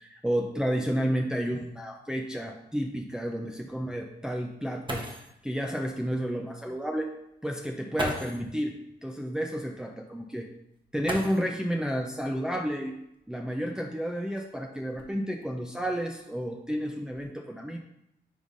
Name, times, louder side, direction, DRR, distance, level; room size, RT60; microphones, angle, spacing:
voice 1, 0.0-5.1 5.4-7.1 7.4-10.5 10.9-13.0 13.3-17.8, equal, 5° right, 2 dB, 0.6 m, -31 dB
sound 1, 4.5-4.6 4.9-5.4 6.7-6.8 7.9-8.5 11.0-11.8 13.1-13.2 14.0-15.4 16.1-16.5 16.8-17.2, right 1 dB, 30° right, 1.2 m, -37 dB
9.9 x 3.6 x 2.7 m, 0.83 s
cardioid pair, 65°, 18 cm